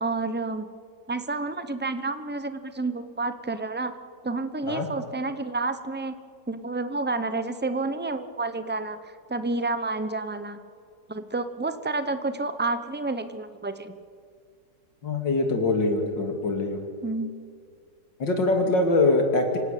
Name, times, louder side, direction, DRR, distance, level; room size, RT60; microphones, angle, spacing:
voice 1, 0.0-0.7 1.1-3.9 4.2-6.2 6.5-10.6 11.1-13.9 17.0-17.4, right 3 dB, 10° right, 10 dB, 0.4 m, -30 dB
voice 2, 15.0-16.8 18.2-19.6, left 2 dB, 80° left, 3 dB, 3.5 m, -23 dB
26.0 x 17.5 x 8.5 m, 2.2 s
omnidirectional pair, 1.9 m